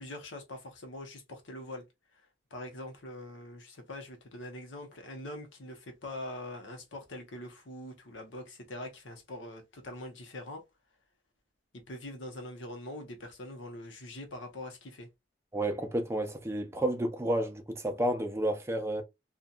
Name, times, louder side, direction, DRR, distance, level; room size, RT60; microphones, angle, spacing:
voice 1, 0.0-1.8 2.1-2.3 2.5-10.6 11.9-15.1, left 1 dB, 90° left, 0.9 m, -43 dB
voice 2, 15.5-19.0, right 1 dB, 15° right, 0.5 m, -31 dB
2.8 x 2.4 x 2.3 m
head